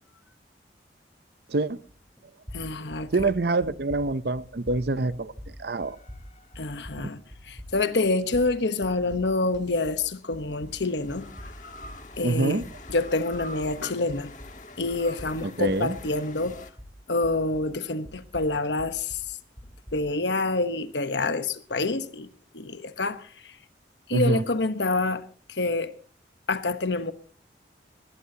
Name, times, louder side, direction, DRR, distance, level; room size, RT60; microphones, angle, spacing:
sound 1, 1.9-2.2 2.4-10.1 10.3-14.6 14.9-17.8 18.0-20.1, equal, 5° left, 4.0 m, -45 dB
voice 1, 2.5-3.1 6.6-7.2 7.5-11.3 12.2-12.6 12.9-14.3 14.8-16.6 17.1-19.2 19.9-22.3 22.5-23.2 24.1-25.9 26.5-27.1, left 2 dB, 75° left, 1.1 m, -27 dB
voice 2, 3.1-5.3 5.6-6.0 12.2-12.6 15.4-15.9 24.1-24.4, right 2 dB, 60° right, 0.7 m, -25 dB
sound 2, 5.8-7.3 9.2-16.7, left 2 dB, 45° left, 1.6 m, -46 dB
21.0 x 16.5 x 2.9 m
head